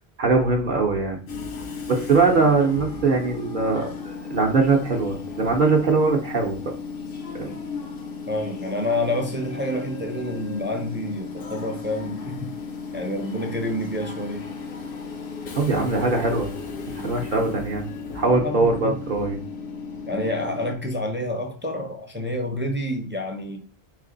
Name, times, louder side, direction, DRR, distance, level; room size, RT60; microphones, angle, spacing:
voice 1, 0.2-1.2 1.9-6.6 7.3-7.6 15.5-16.5 16.9-17.8 18.1-19.4, right 4 dB, 55° right, 0 dB, 0.8 m, -21 dB
Train / Subway metro underground, 1.3-20.7, left 5 dB, 65° left, 0.9 m, -35 dB
voice 2, 8.3-12.5 12.9-14.4 17.0-17.2 18.2-19.0 20.1-23.6, left 1 dB, 15° right, 3 dB, 0.5 m, -28 dB
3.6 x 3.3 x 3.8 m, 0.39 s
omnidirectional pair, 1.0 m